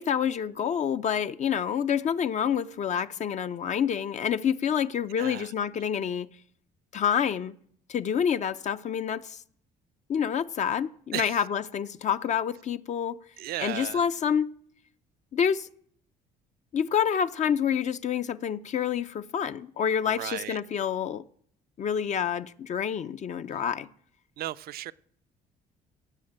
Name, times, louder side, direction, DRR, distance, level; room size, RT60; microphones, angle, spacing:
voice 1, 0.0-6.3 6.9-7.5 7.9-9.4 10.1-13.2 13.6-14.5 15.3-15.7 16.7-21.2 21.8-23.9, left 8 dB, 45° left, 0.5 m, -28 dB
voice 2, 5.1-5.5 11.1-11.4 13.4-14.0 20.1-20.6 24.4-24.9, right 14 dB, 65° right, 0.5 m, -35 dB
16.5 x 7.2 x 8.7 m
cardioid pair, 110°, 17 cm